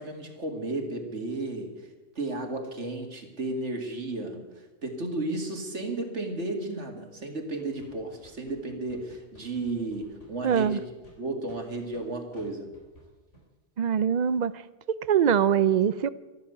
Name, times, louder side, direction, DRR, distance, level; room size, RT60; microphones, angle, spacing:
voice 1, 0.0-1.7 2.2-4.4 4.8-10.8 11.2-12.7, right 2 dB, 75° right, 2.5 m, -33 dB
sound 1, 7.6-12.0 12.3-12.5 12.7-13.0 13.3-13.4, equal, 85° left, 4.1 m, -56 dB
voice 2, 10.4-10.8 13.8-14.6 14.9-16.1, right 8 dB, 50° right, 0.5 m, -23 dB
13.5 x 12.0 x 6.9 m
omnidirectional pair, 1.2 m